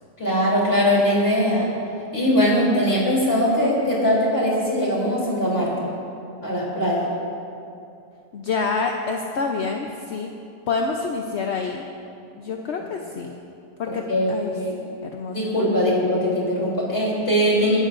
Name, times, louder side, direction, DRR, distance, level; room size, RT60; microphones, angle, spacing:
voice 1, 0.2-1.7 2.1-5.7 6.4-7.1 13.8-14.8 15.3-17.8, equal, 35° left, -5 dB, 3.4 m, -21 dB
voice 2, 8.3-10.3 10.7-11.8 12.4-13.4 13.8-14.0 14.3-14.5 15.1-15.5, left 4 dB, 60° left, 2 dB, 0.7 m, -27 dB
23.0 x 12.0 x 2.5 m, 2.7 s
omnidirectional pair, 1.8 m